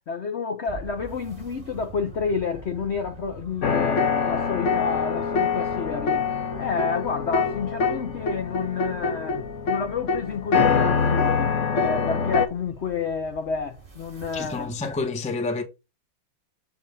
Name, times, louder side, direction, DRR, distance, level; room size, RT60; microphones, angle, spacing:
voice 1, 0.1-6.3 6.6-11.5 11.8-14.7, left 5 dB, 70° left, 0.6 m, -30 dB
sound 1, 0.7-15.1, right 5 dB, 20° right, 1.2 m, -45 dB
sound 2, 3.6-12.5, left 5 dB, 50° left, 1.0 m, -24 dB
voice 2, 14.3-15.6, left 3 dB, 10° left, 0.3 m, -28 dB
6.9 x 3.5 x 5.3 m
omnidirectional pair, 2.1 m